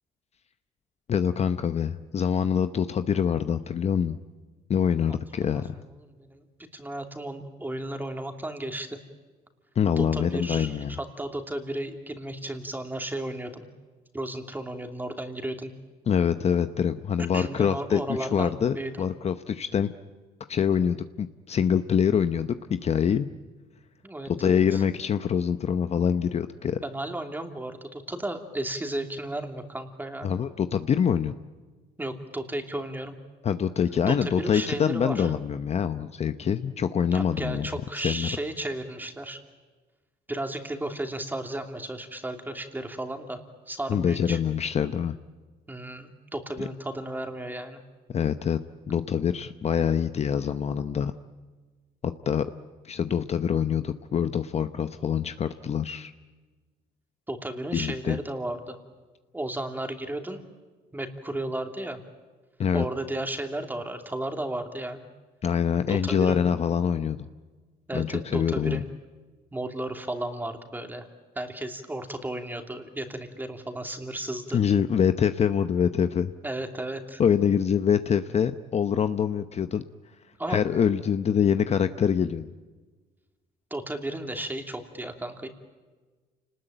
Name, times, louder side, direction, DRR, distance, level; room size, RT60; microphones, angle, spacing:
voice 1, 1.1-4.2 4.7-5.7 9.8-10.9 16.1-19.9 20.5-23.3 24.4-26.8 30.2-31.4 33.4-37.7 38.0-38.3 43.9-45.2 48.1-48.6 48.9-51.1 52.0-52.4 52.8-56.1 57.7-58.2 62.6-62.9 65.4-67.3 67.9-68.8 74.5-76.3 77.2-79.8 80.5-82.5, left 7 dB, 40° left, 10 dB, 0.8 m, -25 dB
voice 2, 6.7-9.0 10.0-13.6 14.1-15.7 17.3-19.0 24.0-24.8 26.8-30.3 32.0-33.1 34.1-35.3 37.1-39.4 40.3-43.4 43.7-44.4 45.7-47.8 57.3-58.8 59.3-60.4 60.9-62.0 62.7-65.0 65.9-66.5 67.9-68.9 69.5-71.0 71.3-74.6 76.4-77.2 80.4-80.6 83.7-85.5, right 1 dB, 10° right, 5 dB, 2.8 m, -34 dB
28.5 x 20.0 x 9.1 m, 1.3 s
cardioid pair, 110°, 17 cm